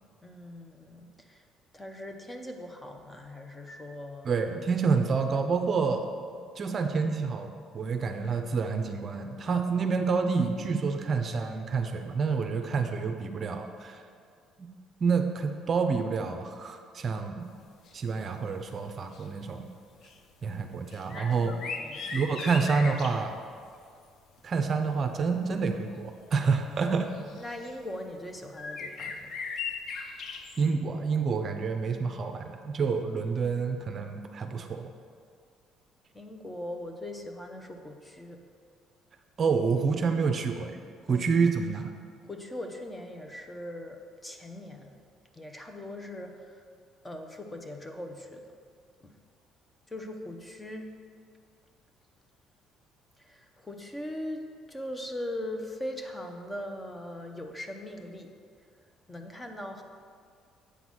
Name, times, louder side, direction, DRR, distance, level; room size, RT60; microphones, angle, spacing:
voice 1, 0.2-1.4 1.7-4.3 20.4-22.2 27.4-29.5 36.1-38.4 41.1-41.3 42.2-44.9 45.3-46.6 47.0-48.4 49.0-49.1 49.9-50.9 53.2-54.4 54.7-58.3 59.1-59.8, left 1 dB, 15° left, 4 dB, 0.7 m, -40 dB
voice 2, 4.2-6.0 6.6-14.0 15.0-17.5 17.9-19.6 20.4-21.5 22.1-23.4 24.4-27.1 30.6-34.9 39.4-40.8 41.1-41.9, right 5 dB, 40° right, 6 dB, 0.5 m, -28 dB
sound 1, 17.9-18.0 18.3-18.5 18.9-19.6 20.0-20.2 20.9-23.3 25.4-25.5 26.5-26.6 27.1-27.7 28.5-30.7, left 5 dB, 55° left, 0.6 m, -38 dB
8.2 x 4.0 x 6.1 m, 2.1 s
cardioid pair, 110°, 0 cm